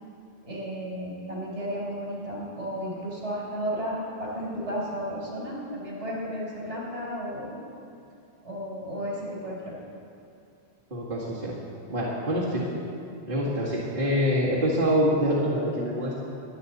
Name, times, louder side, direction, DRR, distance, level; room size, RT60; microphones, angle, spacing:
voice 1, 0.4-7.5 8.4-9.7, equal, 80° right, -5 dB, 4.3 m, -33 dB
voice 2, 10.9-11.6 11.9-12.6 13.3-16.2, equal, 50° right, -7 dB, 2.1 m, -25 dB
22.5 x 8.8 x 4.1 m, 2.6 s
omnidirectional pair, 1.2 m